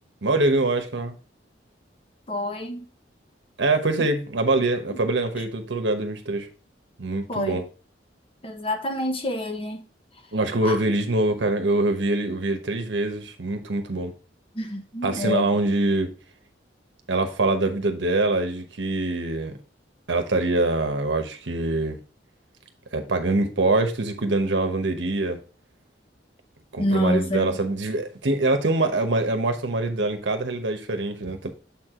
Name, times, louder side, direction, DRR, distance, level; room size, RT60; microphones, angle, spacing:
voice 1, 0.2-1.1 3.6-6.5 7.0-7.7 10.3-14.1 15.0-16.1 17.1-19.5 20.1-22.0 22.9-25.4 26.7-31.5, right 2 dB, 75° right, 1.0 m, -24 dB
voice 2, 2.3-2.9 7.3-7.6 8.4-9.8 10.6-10.8 14.5-15.5 26.8-27.6, left 1 dB, 30° left, 1.2 m, -27 dB
7.3 x 4.6 x 3.6 m
head